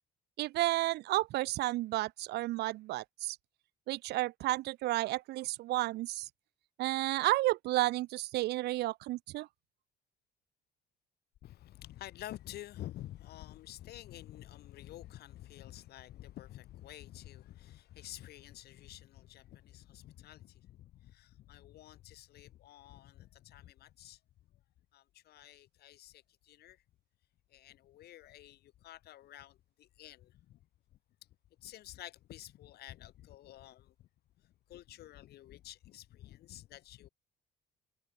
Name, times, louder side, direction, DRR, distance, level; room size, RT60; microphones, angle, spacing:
voice 1, 0.4-3.4 3.9-6.3 6.8-9.5, right 17 dB, 75° right, 0.8 m, -32 dB
voice 2, 11.4-24.5 24.9-26.8 27.5-30.6 30.9-31.0 31.6-34.1 34.4-37.1, left 14 dB, 70° left, 7.8 m, -50 dB
cardioid pair, 110°, 17 cm